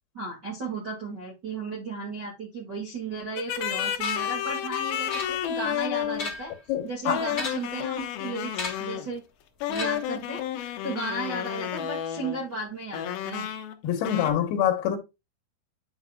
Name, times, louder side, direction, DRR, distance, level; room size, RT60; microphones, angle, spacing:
voice 1, 0.1-6.5 6.8-9.2 9.7-13.5, right 2 dB, 75° right, 0.9 m, -35 dB
sound 1, 3.4-6.3 7.1-9.1 9.6-12.4 12.9-13.8 14.0-14.3, left 10 dB, 90° left, 2.1 m, -31 dB
sound 2, 4.0-4.4 5.1-5.7 6.0-6.6 7.3-7.8 8.5-9.0 9.7-10.2, left 3 dB, 50° left, 1.0 m, -36 dB
voice 2, 6.7-7.2 13.8-15.0, left 9 dB, 65° left, 2.8 m, -25 dB
9.6 x 5.8 x 2.3 m
omnidirectional pair, 5.5 m